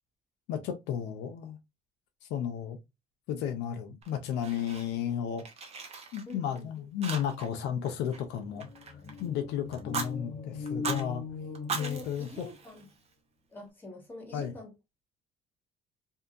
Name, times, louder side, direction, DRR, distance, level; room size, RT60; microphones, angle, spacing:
voice 1, 0.5-1.6 2.3-2.8 3.3-5.4 6.1-8.7 9.2-11.2 11.7-12.5 14.3-14.5, left 9 dB, 85° left, 0.6 m, -33 dB
Fire, 4.0-5.1 5.4-6.6 7.0-7.6 7.8-9.3 9.7-10.1 10.7-11.0 11.5-13.1, right 5 dB, 40° right, 0.7 m, -39 dB
voice 2, 6.3-6.8 11.8-12.9 13.5-14.7, left 2 dB, 10° left, 1.5 m, -45 dB
sound 1, 7.9-12.5, left 4 dB, 40° left, 0.8 m, -41 dB
2.7 x 2.6 x 2.3 m
cardioid pair, 110°, 17 cm